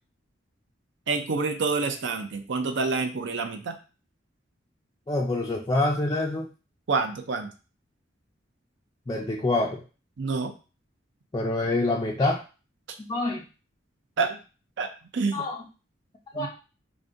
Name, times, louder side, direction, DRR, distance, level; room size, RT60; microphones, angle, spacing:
voice 1, 1.1-3.7 6.9-7.5 10.2-10.5 14.2-14.4 14.8-15.4 16.3-16.5, right 4 dB, 65° right, 7 dB, 0.5 m, -27 dB
voice 2, 5.1-6.5 9.1-9.8 11.3-12.4 13.1-13.4 15.3-15.6 16.3-16.5, left 2 dB, 20° left, -2 dB, 0.3 m, -26 dB
5.0 x 2.5 x 2.5 m, 0.34 s
head